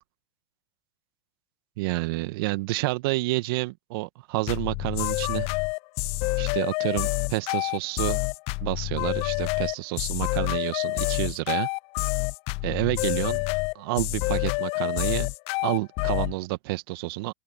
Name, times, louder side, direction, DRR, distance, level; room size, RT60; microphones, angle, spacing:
voice 1, 1.8-5.5 6.4-8.2 8.6-11.7 12.6-13.4 13.8-15.3 15.6-17.3, right 22 dB, 60° right, 1.7 m, -29 dB
sound 1, 4.5-16.3, left 27 dB, 45° left, 0.7 m, -27 dB
open air
hypercardioid pair, 100°, 14 cm